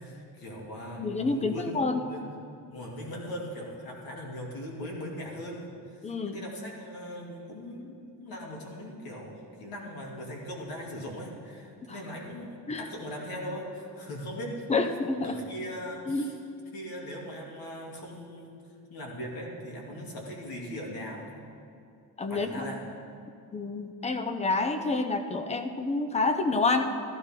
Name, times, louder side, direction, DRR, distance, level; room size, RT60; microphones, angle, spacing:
voice 1, 0.0-2.2 2.7-14.9 15.2-16.4 16.7-18.6 18.9-21.3 22.3-22.8, equal, 60° left, -2 dB, 2.6 m, -39 dB
voice 2, 1.0-2.0 6.0-6.4 12.7-12.8 14.7-15.4 16.1-16.3 22.2-22.7 23.5-26.8, left 3 dB, 15° left, 7 dB, 0.6 m, -28 dB
15.0 x 14.0 x 3.7 m, 2.5 s
cardioid pair, 160°, 40 cm